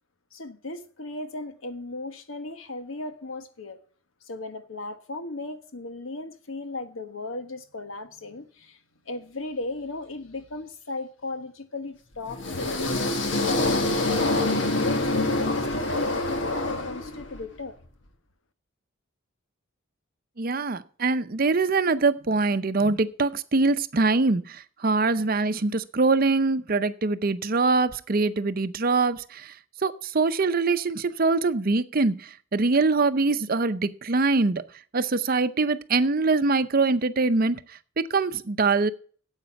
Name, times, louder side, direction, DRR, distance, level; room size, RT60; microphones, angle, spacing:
voice 1, 0.3-3.8 4.2-8.8 9.0-12.7 13.5-15.0 15.4-17.8, left 2 dB, 85° left, 1.3 m, -36 dB
sound 1, 12.3-17.4, left 2 dB, 65° left, 1.6 m, -25 dB
voice 2, 20.4-29.6 29.8-34.6 34.9-38.9, right 3 dB, 45° right, 0.6 m, -23 dB
9.4 x 8.1 x 5.7 m
head